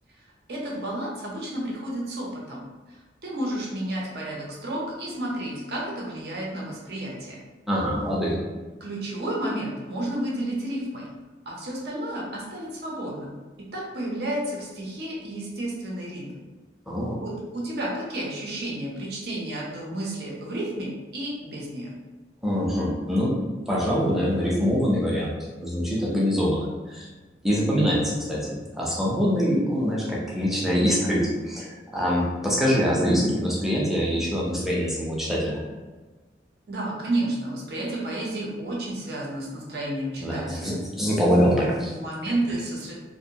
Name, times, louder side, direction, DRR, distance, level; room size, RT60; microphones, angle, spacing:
voice 1, 0.5-7.4 8.8-11.1 11.5-16.4 17.2-21.9 36.7-40.8 41.9-42.9, right 1 dB, 60° right, -3 dB, 0.7 m, -31 dB
voice 2, 7.7-8.4 16.9-17.2 22.4-23.3 23.7-27.1 27.4-31.7 31.9-35.6 40.2-42.0, equal, ahead, -6 dB, 0.5 m, -24 dB
2.6 x 2.1 x 2.7 m, 1.3 s
head